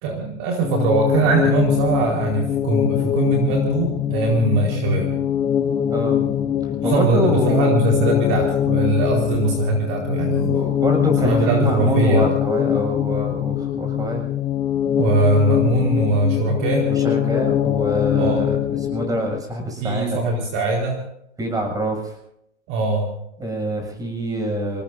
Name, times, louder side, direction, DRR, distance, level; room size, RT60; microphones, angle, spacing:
voice 1, 0.0-5.2 6.8-10.5 11.2-12.3 15.0-16.9 18.2-18.4 19.8-21.0 22.7-23.1, right 2 dB, 35° right, 0 dB, 4.5 m, -21 dB
sound 1, 0.6-19.4, left 10 dB, 10° left, 0.6 m, -22 dB
voice 2, 5.9-6.2 6.6-8.0 10.4-14.2 16.9-18.6 18.9-20.2 21.4-22.2 23.4-24.8, equal, 10° right, 3 dB, 7.1 m, -25 dB
27.0 x 19.5 x 2.7 m, 0.76 s
hypercardioid pair, 130°, 37 cm